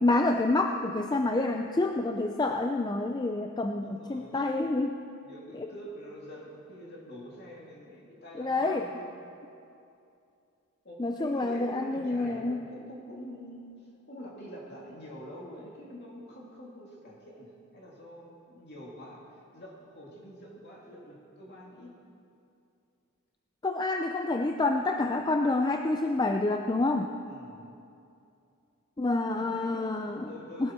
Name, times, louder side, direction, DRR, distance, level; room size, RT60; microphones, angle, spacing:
voice 1, 0.0-5.0 5.6-5.7 8.4-8.8 11.0-12.6 23.6-27.2 29.0-30.3 30.6-30.7, left 2 dB, 20° left, 4 dB, 0.4 m, -28 dB
voice 2, 3.8-4.3 5.2-9.1 10.8-21.9 27.3-27.7 29.2-30.7, equal, 50° left, -4 dB, 2.4 m, -46 dB
20.0 x 12.0 x 4.4 m, 2.6 s
head